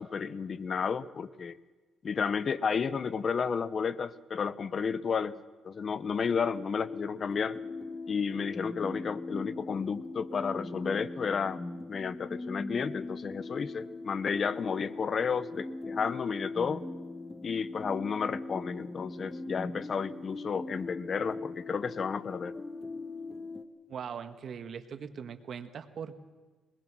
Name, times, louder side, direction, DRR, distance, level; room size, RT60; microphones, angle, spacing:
voice 1, 0.0-1.6 2.0-7.6 8.1-11.6 11.9-16.8 17.4-22.5, left 6 dB, 45° left, 17 dB, 0.8 m, -32 dB
sound 1, 6.2-23.6, left 2 dB, 15° left, 1.2 m, -41 dB
voice 2, 23.9-26.2, right 7 dB, 55° right, 10 dB, 1.4 m, -40 dB
21.5 x 20.5 x 6.1 m, 1.3 s
cardioid pair, 90°, 0 cm